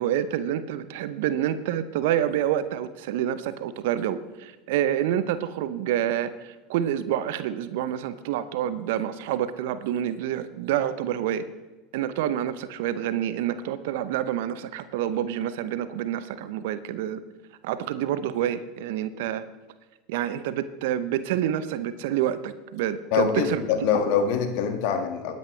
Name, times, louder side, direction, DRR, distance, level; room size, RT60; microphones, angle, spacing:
voice 1, 0.0-11.4 11.9-17.2 17.6-19.4 20.1-23.6, right 11 dB, 65° right, 13 dB, 0.8 m, -28 dB
voice 2, 23.1-25.3, left 7 dB, 60° left, 6 dB, 1.9 m, -24 dB
19.5 x 9.4 x 3.3 m, 1.2 s
hypercardioid pair, 75°, 0 cm